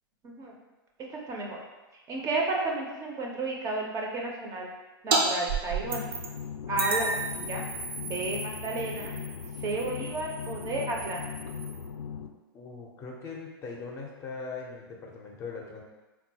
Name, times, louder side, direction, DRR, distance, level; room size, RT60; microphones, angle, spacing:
voice 1, 1.1-1.6 1.9-4.7 5.0-6.1 6.7-7.6 8.0-9.1 9.6-11.2, right 2 dB, 25° right, -1 dB, 0.5 m, -32 dB
sound 1, 5.1-5.2 5.5-6.4 6.8-11.9, right 4 dB, 65° right, 0.6 m, -33 dB
sound 2, 5.8-12.3, left 7 dB, 85° left, 0.4 m, -38 dB
voice 2, 12.5-15.8, left 4 dB, 25° left, -1 dB, 0.5 m, -40 dB
3.7 x 2.2 x 2.7 m, 1.1 s
hypercardioid pair, 115°, 13 cm